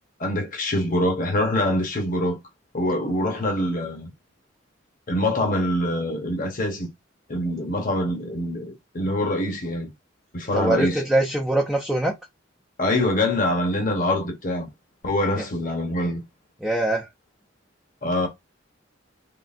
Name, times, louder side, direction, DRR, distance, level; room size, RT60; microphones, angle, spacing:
voice 1, 0.2-2.4 2.7-4.1 5.1-6.9 7.3-9.9 10.3-11.0 12.8-14.7 15.0-16.2 18.0-18.3, left 1 dB, 45° left, 1.0 m, -24 dB
voice 2, 10.5-12.1 16.6-17.1, right 1 dB, 5° right, 0.5 m, -23 dB
3.8 x 3.2 x 2.6 m
head